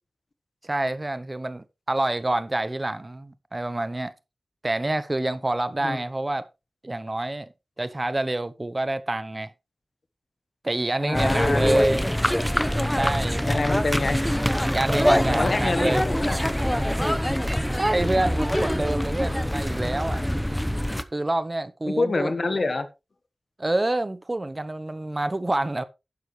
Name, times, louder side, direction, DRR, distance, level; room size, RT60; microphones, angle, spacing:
voice 1, 0.6-4.1 4.6-6.5 6.8-7.5 7.8-9.5 10.6-12.1 12.9-13.8 14.6-16.0 17.7-20.2 21.0-22.3 23.6-25.8, right 2 dB, 30° right, 0.8 m, -27 dB
voice 2, 11.0-12.0 13.5-14.2 15.3-16.4 21.9-22.9, left 3 dB, 55° left, 1.3 m, -26 dB
sound 1, 11.1-21.0, equal, 5° left, 0.8 m, -24 dB
12.0 x 9.6 x 3.2 m
wide cardioid pair, 80°, 0 cm